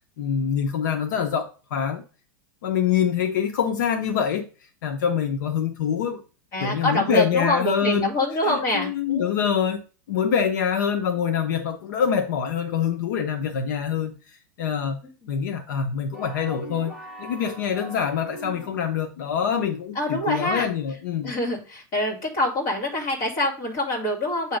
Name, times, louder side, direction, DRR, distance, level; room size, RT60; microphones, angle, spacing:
voice 1, 0.2-2.0 2.6-4.5 4.8-6.2 6.6-8.1 8.5-9.8 10.1-15.0 15.3-21.3, left 7 dB, 65° left, 4 dB, 0.8 m, -25 dB
voice 2, 6.5-9.6 15.2-15.3 19.9-20.7 21.2-24.6, left 1 dB, 30° left, 0 dB, 2.2 m, -26 dB
sound 1, 16.1-19.0, right 2 dB, 5° right, 1.2 m, -40 dB
7.8 x 2.9 x 5.1 m, 0.35 s
supercardioid pair, 175°, 11 cm